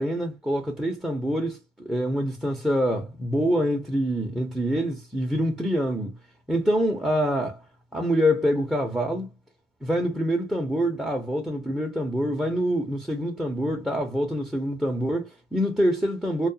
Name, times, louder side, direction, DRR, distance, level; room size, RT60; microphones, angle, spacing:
voice 1, 0.0-6.2 6.5-7.6 7.9-9.3 9.8-16.5, equal, 5° right, 0.6 m, -25 dB
2.3 x 2.2 x 2.6 m
cardioid pair, 110°, 17 cm